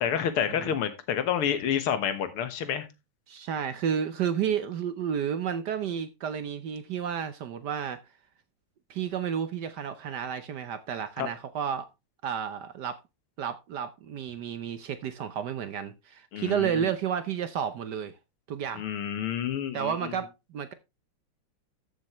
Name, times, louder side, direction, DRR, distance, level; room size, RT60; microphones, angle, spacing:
voice 1, 0.0-2.9 11.2-11.3 16.3-16.9 18.8-20.2, left 8 dB, 80° left, 2.1 m, -29 dB
voice 2, 3.3-8.0 8.9-11.9 12.2-13.0 13.4-18.2 18.5-18.8 19.7-20.7, right 8 dB, 65° right, 1.1 m, -31 dB
14.0 x 6.3 x 3.0 m
omnidirectional pair, 2.4 m